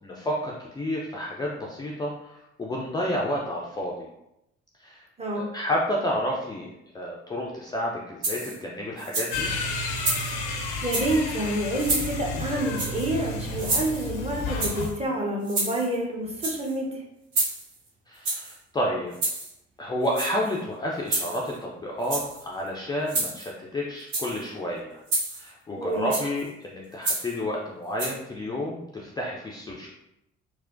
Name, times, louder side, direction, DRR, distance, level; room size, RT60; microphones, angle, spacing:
voice 1, 0.0-4.1 4.8-5.0 5.3-9.5 18.1-19.2 19.8-25.0 25.3-29.9, left 1 dB, 15° left, -3 dB, 0.4 m, -30 dB
voice 2, 5.2-5.5 10.8-16.9 25.8-26.1, right 1 dB, 20° right, -1 dB, 0.8 m, -28 dB
sound 1, 8.2-8.6 9.0-9.4 9.9-10.4 10.8-11.2 11.8-12.2 12.7-13.1 13.6-14.2 14.6-14.9 15.4-16.0 16.3-16.7 17.3-17.7 18.2-18.5 19.1-19.5 20.0-20.5 21.1-21.6 22.0-22.4 23.1-23.5 24.0-24.4 25.1-25.5 26.1-26.4 27.0-27.4 28.0-28.1, right 2 dB, 55° right, 1.1 m, -29 dB
sound 2, 9.3-14.9, left 2 dB, 70° left, 0.6 m, -31 dB
4.2 x 2.1 x 2.5 m, 0.86 s
figure-of-eight pair, 50°, 33 cm